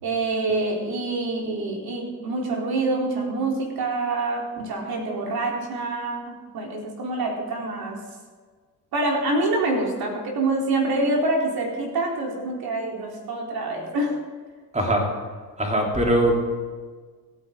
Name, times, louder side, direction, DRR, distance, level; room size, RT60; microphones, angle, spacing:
voice 1, 0.0-8.0 8.9-14.1, right 2 dB, 45° right, -1 dB, 3.9 m, -26 dB
voice 2, 14.7-15.1 15.6-16.3, right 1 dB, 15° right, 0 dB, 3.7 m, -21 dB
25.0 x 9.7 x 3.9 m, 1.5 s
figure-of-eight pair, 50°, 50 cm